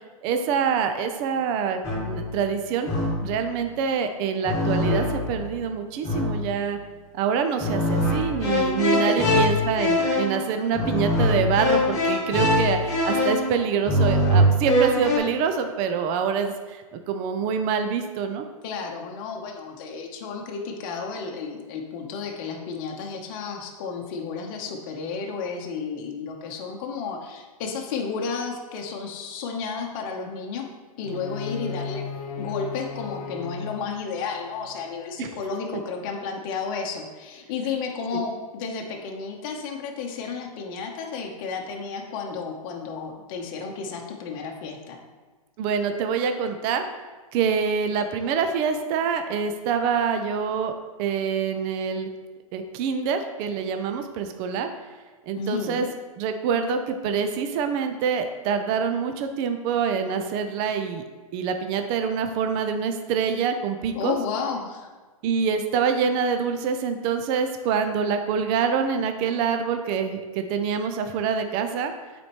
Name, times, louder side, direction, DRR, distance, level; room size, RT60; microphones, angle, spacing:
voice 1, 0.2-2.9 3.2-6.8 7.1-18.5 35.2-35.3 45.6-46.8 47.3-50.7 51.0-52.1 52.5-54.7 55.3-55.9 56.2-61.0 61.3-64.2 65.2-71.9, right 6 dB, 25° right, 7 dB, 0.4 m, -26 dB
sound 1, 1.8-2.3 2.9-3.4 4.4-5.4 6.0-6.6 7.6-15.2, left 1 dB, 15° left, 1.5 m, -23 dB
voice 2, 8.9-9.4 18.6-30.7 31.0-32.0 32.4-45.0 55.4-55.8 63.9-64.9, left 5 dB, 35° left, 1 dB, 0.9 m, -32 dB
sound 2, 31.0-35.1, left 5 dB, 85° left, 0.9 m, -36 dB
8.3 x 4.3 x 3.0 m, 1.3 s
hypercardioid pair, 150°, 19 cm